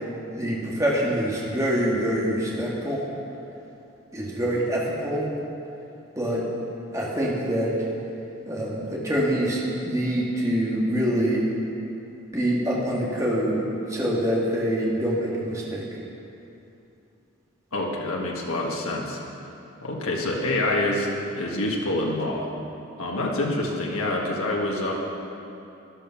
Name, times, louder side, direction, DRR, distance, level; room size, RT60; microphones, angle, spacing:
voice 1, 0.3-3.0 4.1-5.3 6.2-6.5 6.9-7.7 8.5-11.5 12.3-13.6 13.9-15.8, equal, 15° right, -5 dB, 1.9 m, -25 dB
voice 2, 17.7-19.2 19.8-21.1 21.4-22.5 23.0-24.9, left 2 dB, 85° left, -2 dB, 1.7 m, -26 dB
13.0 x 10.5 x 5.8 m, 2.8 s
head